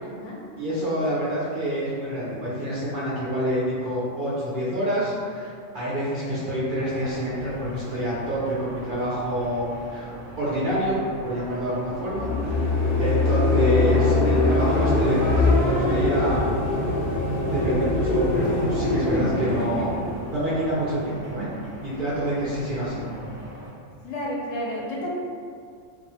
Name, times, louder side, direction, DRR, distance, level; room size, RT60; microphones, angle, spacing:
voice 1, 0.0-0.4 12.6-12.7 19.1-20.0 22.4-22.5 24.0-25.2, left 1 dB, 90° left, -4 dB, 1.0 m, -32 dB
voice 2, 0.6-9.6 9.9-10.1 10.4-11.0 11.2-12.7 13.0-16.4 17.5-19.9 20.3-21.5 21.8-23.2, equal, 60° right, -8 dB, 0.5 m, -27 dB
sound 1, 6.8-23.7, equal, 15° right, 0.6 m, -42 dB
sound 2, 11.9-21.0, left 2 dB, 60° left, 0.6 m, -23 dB
2.3 x 2.3 x 2.7 m, 2.2 s
omnidirectional pair, 1.3 m